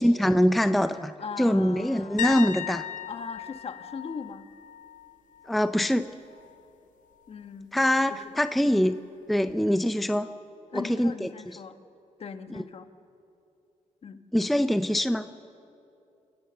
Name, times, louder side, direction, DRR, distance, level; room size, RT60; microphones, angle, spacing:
voice 1, 0.0-1.1 1.4-2.9 5.5-6.1 7.7-9.0 9.3-10.3 10.7-11.3 14.3-15.3, equal, ahead, 11 dB, 0.5 m, -23 dB
voice 2, 0.9-2.3 3.1-4.5 7.3-7.7 8.1-8.3 8.7-8.9 10.7-11.8 12.2-12.9 14.0-14.2, left 5 dB, 50° left, 8 dB, 1.3 m, -39 dB
sound 1, 2.2-5.9 6.3-6.6 9.5-9.6, left 11 dB, 80° left, 0.8 m, -37 dB
30.0 x 14.5 x 6.8 m, 2.7 s
cardioid pair, 105°, 13 cm